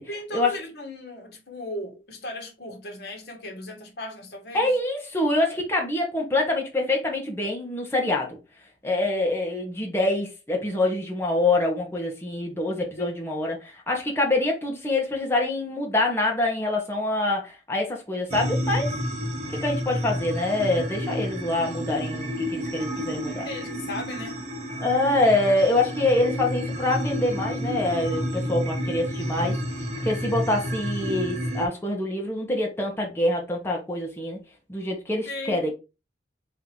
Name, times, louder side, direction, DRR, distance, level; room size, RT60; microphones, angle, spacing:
voice 1, 0.1-4.8 13.0-13.1 23.2-24.4 35.3-35.7, left 1 dB, 65° left, 1.3 m, -36 dB
voice 2, 4.5-8.4 8.8-18.9 19.5-23.4 24.8-29.6 30.0-34.4 34.7-35.7, left 2 dB, 15° left, 1.1 m, -25 dB
sound 1, 18.3-31.7, equal, 40° right, 0.8 m, -30 dB
3.8 x 2.8 x 4.4 m
head